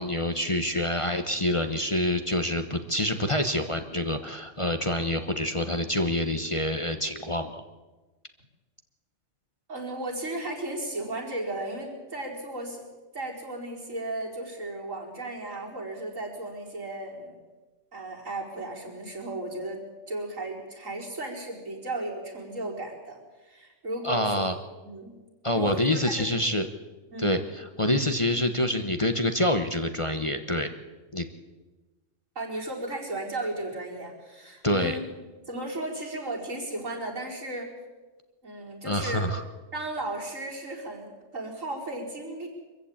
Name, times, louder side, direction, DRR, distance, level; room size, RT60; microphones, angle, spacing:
voice 1, 0.0-7.6 24.0-24.5 25.4-26.7 27.2-30.7 31.1-31.3 34.6-35.0 38.8-39.4, left 1 dB, 25° left, 6 dB, 1.1 m, -26 dB
voice 2, 9.7-12.8 13.1-17.4 17.9-24.5 24.8-25.1 25.5-26.3 27.1-27.4 32.3-35.0 35.5-37.7 38.4-39.2 39.7-42.5, right 2 dB, 75° right, -2 dB, 5.1 m, -35 dB
24.0 x 15.0 x 8.7 m, 1.2 s
omnidirectional pair, 1.3 m